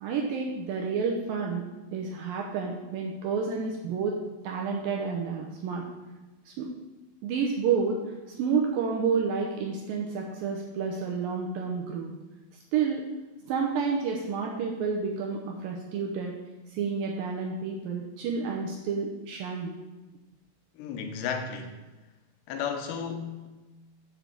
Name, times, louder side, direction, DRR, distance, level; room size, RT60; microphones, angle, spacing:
voice 1, 0.0-1.6 1.9-4.2 4.4-5.8 6.5-6.7 7.2-12.1 12.7-13.0 13.4-16.4 16.7-19.7, right 5 dB, 75° right, 0 dB, 2.1 m, -30 dB
voice 2, 20.8-21.8 22.5-23.5, left 6 dB, 85° left, 5 dB, 3.0 m, -33 dB
7.3 x 6.1 x 6.7 m, 1.1 s
omnidirectional pair, 4.9 m